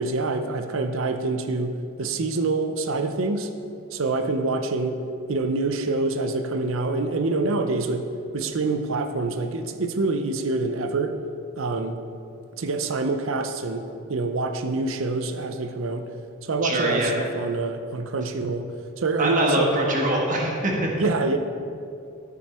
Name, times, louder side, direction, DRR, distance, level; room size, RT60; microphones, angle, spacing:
voice 1, 0.0-3.5 3.9-5.0 5.3-11.2 11.6-12.0 12.6-16.1 16.4-19.8 21.0-21.4, right 3 dB, 70° right, 8 dB, 0.6 m, -26 dB
voice 2, 16.6-17.1 19.2-20.9, right 1 dB, 40° right, -1 dB, 1.5 m, -23 dB
13.0 x 6.4 x 4.3 m, 2.5 s
head